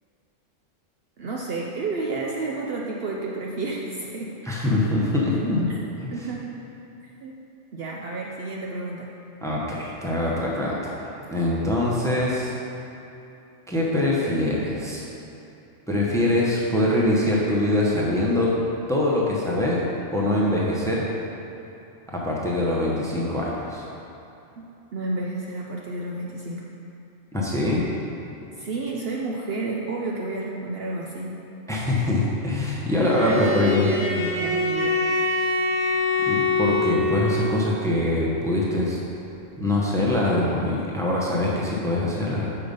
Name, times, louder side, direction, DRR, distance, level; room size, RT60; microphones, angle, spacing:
voice 1, 1.2-4.3 5.7-5.8 6.1-6.6 7.0-7.4 7.7-9.1 24.6-24.7 24.9-26.7 28.6-31.5 33.2-35.0, right 3 dB, 60° right, -2 dB, 0.8 m, -31 dB
voice 2, 4.4-6.2 9.4-12.5 13.7-15.1 15.9-18.5 18.9-19.8 20.1-21.0 22.1-23.8 27.3-27.9 31.7-33.9 36.3-39.0 39.6-42.5, left 1 dB, 5° left, -4 dB, 0.8 m, -23 dB
Bowed string instrument, 32.9-37.7, left 3 dB, 20° right, 0.3 m, -25 dB
6.8 x 5.1 x 5.3 m, 2.8 s
omnidirectional pair, 1.3 m